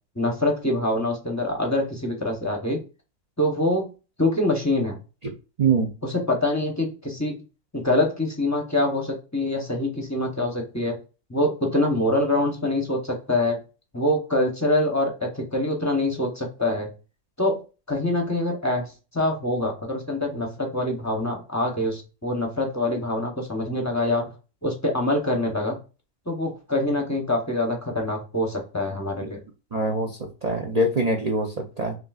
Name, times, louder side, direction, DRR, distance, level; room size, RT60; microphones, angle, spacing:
voice 1, 0.2-2.8 3.4-3.9 4.2-5.0 6.0-7.4 7.7-11.0 11.3-13.6 13.9-16.9 17.4-24.3 24.6-25.7 26.3-29.4, left 1 dB, 15° left, 1 dB, 0.6 m, -25 dB
voice 2, 5.6-5.9 29.2-29.4 29.7-30.1 30.4-32.0, right 2 dB, 60° right, 0 dB, 0.4 m, -23 dB
6.0 x 2.7 x 2.4 m, 0.31 s
omnidirectional pair, 1.6 m